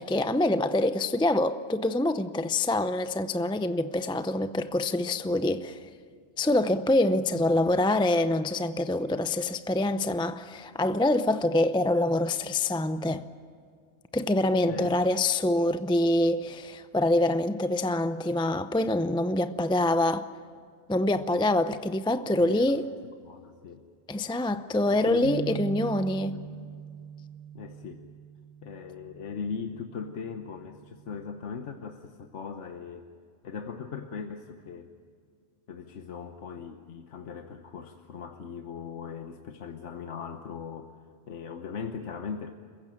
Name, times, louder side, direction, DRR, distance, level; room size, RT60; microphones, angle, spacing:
voice 1, 0.0-5.8 6.4-13.3 14.1-20.3 20.9-22.8 24.1-26.4, left 1 dB, 5° left, 0.4 m, -25 dB
voice 2, 22.4-22.7 23.2-23.9 24.9-25.6 25.9-26.5 27.5-28.0 28.6-33.1 33.4-34.9 35.7-41.0 41.3-42.5, left 6 dB, 80° left, 1.4 m, -39 dB
sound 1, 25.2-31.5, right 10 dB, 40° right, 1.8 m, -42 dB
28.5 x 16.0 x 9.0 m
omnidirectional pair, 1.2 m